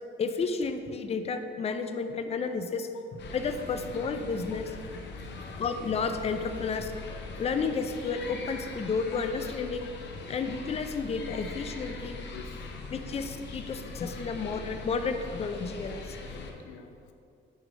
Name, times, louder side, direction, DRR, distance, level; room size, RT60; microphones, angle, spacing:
voice 1, 0.2-4.7 5.6-6.9 7.4-9.9 10.3-12.2 12.9-16.2, left 5 dB, 30° left, 8 dB, 0.4 m, -32 dB
sound 1, 3.2-16.5, left 3 dB, 60° left, 0.7 m, -41 dB
voice 2, 5.1-5.6 12.3-13.1 14.1-14.4 16.3-17.1, left 6 dB, 90° left, 8 dB, 0.4 m, -48 dB
6.3 x 3.2 x 5.1 m, 2.5 s
cardioid pair, 90°, 20 cm